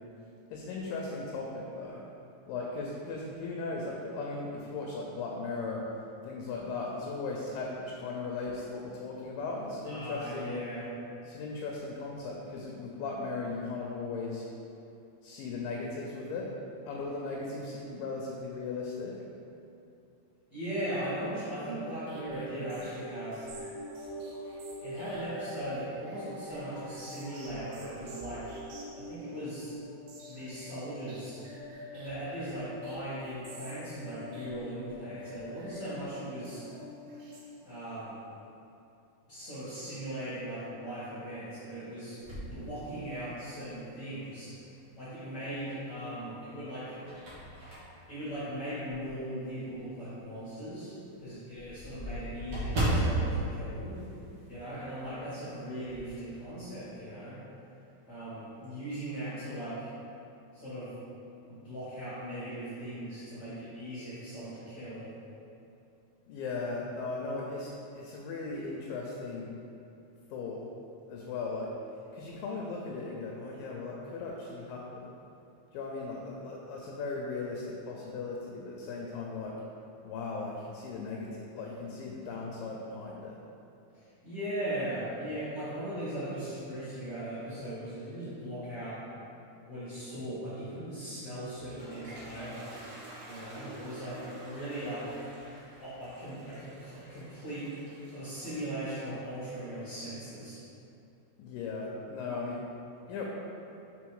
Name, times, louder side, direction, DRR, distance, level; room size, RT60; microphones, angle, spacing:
voice 1, 0.5-2.0 2.5-5.8 6.2-10.5 11.3-14.4 15.2-16.5 16.9-19.2 66.3-69.5 70.3-70.7 71.1-71.7 72.1-75.1 75.7-79.6 80.0-83.4 101.4-102.6 103.1-103.2, left 3 dB, 80° left, -2 dB, 2.1 m, -37 dB
voice 2, 9.8-10.9 20.5-23.5 24.8-28.6 29.0-29.7 30.3-31.4 31.9-36.6 37.6-38.2 39.3-44.5 45.0-47.0 48.1-54.0 54.5-57.4 58.1-59.9 60.5-60.9 61.5-65.1 83.9-89.0 89.6-92.7 93.2-95.2 95.8-97.7 98.1-100.6, right 1 dB, 65° left, -12 dB, 1.0 m, -39 dB
sound 1, 21.6-38.0, equal, 90° right, 3.0 m, -45 dB
sound 2, 42.2-43.5 44.1-44.2 45.6-46.2 46.6-49.3 49.7-49.8 50.2-50.3 50.6-50.7 50.9-54.7 55.0-55.2 55.5-56.1, right 1 dB, 55° right, 1.5 m, -34 dB
Toilet flush, 91.3-100.2, right 1 dB, 75° right, 3.0 m, -50 dB
6.0 x 3.8 x 4.7 m, 2.7 s
omnidirectional pair, 4.4 m